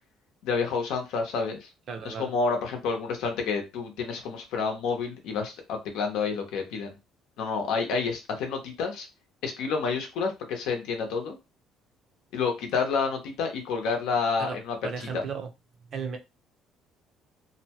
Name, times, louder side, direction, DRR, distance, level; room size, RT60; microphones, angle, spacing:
voice 1, 0.4-1.7 2.0-7.0 7.4-9.1 9.4-11.4 12.3-15.2, left 5 dB, 75° left, 0.8 m, -29 dB
voice 2, 1.9-2.3 14.4-14.6 14.8-15.5 15.9-16.2, right 6 dB, 35° right, 0.5 m, -34 dB
2.7 x 2.2 x 2.9 m
cardioid pair, 170°, 0 cm